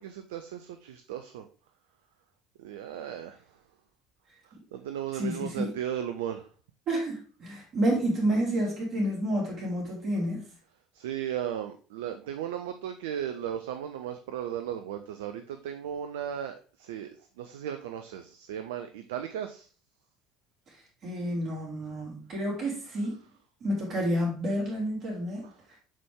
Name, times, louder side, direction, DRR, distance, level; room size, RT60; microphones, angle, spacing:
voice 1, 0.0-1.5 2.6-3.4 4.7-6.5 10.9-17.1 17.4-19.7 22.9-23.2 25.4-25.6, right 10 dB, 70° right, 7 dB, 0.4 m, -36 dB
voice 2, 5.1-5.7 6.9-10.4 21.0-23.2 23.6-25.8, right 1 dB, 45° right, -5 dB, 3.2 m, -29 dB
7.5 x 4.2 x 3.6 m, 0.39 s
figure-of-eight pair, 60°, 0 cm